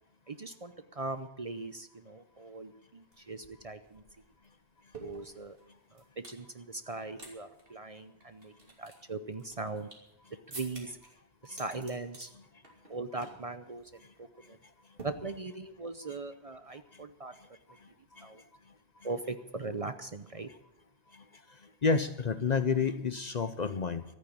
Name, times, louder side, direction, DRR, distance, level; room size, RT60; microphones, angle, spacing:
voice 1, 0.3-4.0 5.0-5.6 5.9-8.5 8.8-9.9 10.5-11.0 11.4-12.3 12.9-13.9 14.2-14.6 15.0-17.3 18.2-18.4 19.0-20.5, right 3 dB, 40° right, 10 dB, 0.7 m, -40 dB
sound 1, 3.1-3.2 3.4-6.4 6.8-7.3 7.6-7.7 8.2-10.1 10.5-11.1 11.4-12.3 12.6-12.9 13.2-13.5 13.8-14.0 15.0-15.7, right 2 dB, 55° right, 3.1 m, -49 dB
voice 2, 21.8-24.0, left 5 dB, 45° left, 12 dB, 0.7 m, -29 dB
13.5 x 9.2 x 8.6 m, 0.85 s
omnidirectional pair, 1.1 m